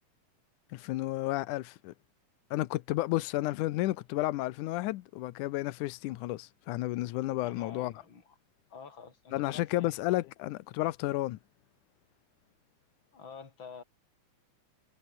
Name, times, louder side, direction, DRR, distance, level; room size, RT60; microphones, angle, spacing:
voice 1, 0.7-1.9 2.5-7.9 9.3-11.4, left 17 dB, 85° left, 2.3 m, -32 dB
voice 2, 7.4-8.3 8.7-9.9 13.1-13.8, left 5 dB, 40° left, 3.5 m, -48 dB
omnidirectional pair, 3.5 m